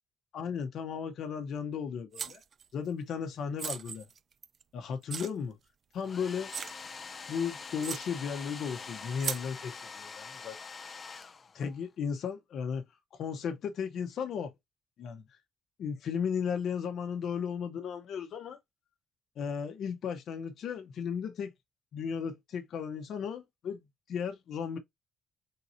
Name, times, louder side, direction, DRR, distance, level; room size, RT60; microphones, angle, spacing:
voice 1, 0.3-2.4 2.7-4.1 4.7-5.6 5.9-6.5 7.3-9.8 10.4-10.6 11.5-12.8 13.1-14.5 15.0-15.4 15.8-18.6 19.4-21.5 21.9-24.8, left 6 dB, 70° left, 0.8 m, -35 dB
sound 1, 2.1-2.6 3.6-4.6 5.1-5.3 5.9-6.0 6.5-6.8 7.4-7.5 7.8-8.1 9.2-9.5, right 7 dB, 50° right, 0.4 m, -37 dB
Domestic sounds home sounds, 6.0-11.9, left 5 dB, 40° left, 0.4 m, -45 dB
3.8 x 2.7 x 4.2 m
cardioid pair, 90°, 0 cm